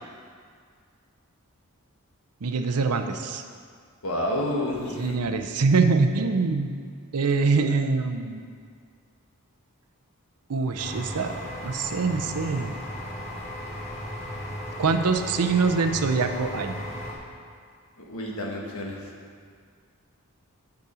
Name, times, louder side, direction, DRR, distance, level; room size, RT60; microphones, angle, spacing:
voice 1, 2.4-3.4 5.0-6.7 7.1-8.4 10.5-11.3 11.6-12.7 14.8-16.8, right 4 dB, 85° right, 7 dB, 0.6 m, -24 dB
voice 2, 4.0-5.2 18.1-19.1, left 1 dB, 70° left, -1 dB, 1.5 m, -29 dB
sound 1, 10.8-17.1, equal, 30° left, 1.5 m, -36 dB
8.2 x 5.2 x 6.8 m, 2.1 s
head